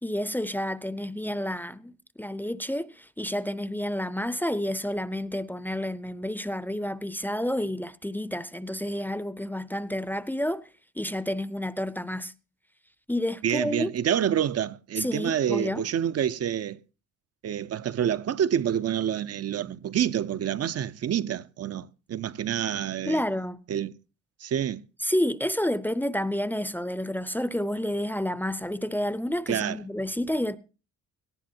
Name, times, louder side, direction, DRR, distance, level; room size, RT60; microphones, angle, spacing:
voice 1, 0.0-1.9 2.2-10.6 11.0-12.3 13.1-13.9 15.0-15.8 23.1-23.6 25.0-30.6, left 1 dB, 5° left, 0.6 m, -30 dB
voice 2, 13.4-16.8 17.4-23.2 23.7-23.9 24.4-24.8 29.5-29.8, right 9 dB, 55° right, 0.7 m, -27 dB
18.0 x 15.0 x 2.8 m
cardioid pair, 90°, 30 cm